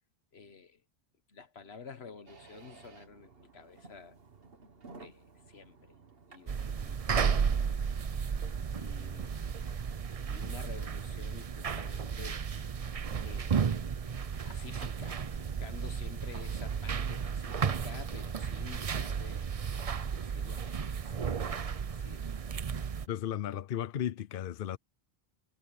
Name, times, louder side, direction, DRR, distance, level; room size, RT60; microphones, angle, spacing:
voice 1, 0.3-0.8 1.3-4.2 5.0-5.9 6.3-7.5 8.7-9.5 10.3-12.4 13.2-13.7 14.4-19.5 20.0-22.3, left 5 dB, 90° left, 1.6 m, -50 dB
sound 1, 2.3-17.3, right 4 dB, 70° right, 1.8 m, -58 dB
sound 2, 6.5-23.1, right 6 dB, 40° right, 0.7 m, -33 dB
voice 2, 23.1-24.8, left 10 dB, 65° left, 0.8 m, -35 dB
omnidirectional pair, 1.0 m